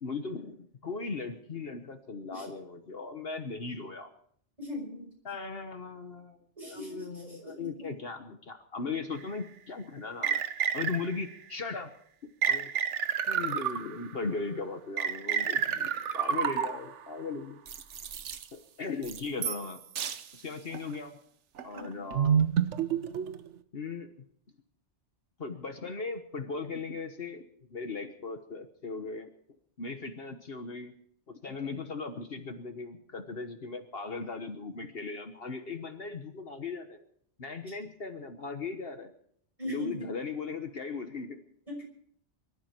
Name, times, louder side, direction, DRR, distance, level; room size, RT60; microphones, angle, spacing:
voice 1, 0.0-4.1 5.2-6.4 6.6-10.4 10.7-11.9 12.5-12.7 13.3-17.6 18.5-19.8 20.3-21.2 21.6-22.4 23.7-24.1 25.4-27.4 27.7-29.3 29.8-30.9 31.3-37.0 37.4-39.1 39.7-41.4, left 4 dB, 55° left, 6 dB, 1.4 m, -38 dB
voice 2, 4.6-5.1 6.6-7.9 21.7-21.9 31.4-31.8 37.7-37.8 39.6-40.1 41.7-41.8, left 1 dB, 30° right, 0 dB, 6.0 m, -40 dB
sound 1, 9.2-9.3 10.2-11.3 12.4-14.2 15.0-17.0 17.7-18.4 19.0-19.7 20.0-20.2 20.7-20.9 21.6-23.5, right 8 dB, 80° right, 1.2 m, -29 dB
23.5 x 12.5 x 4.5 m, 0.64 s
omnidirectional pair, 1.2 m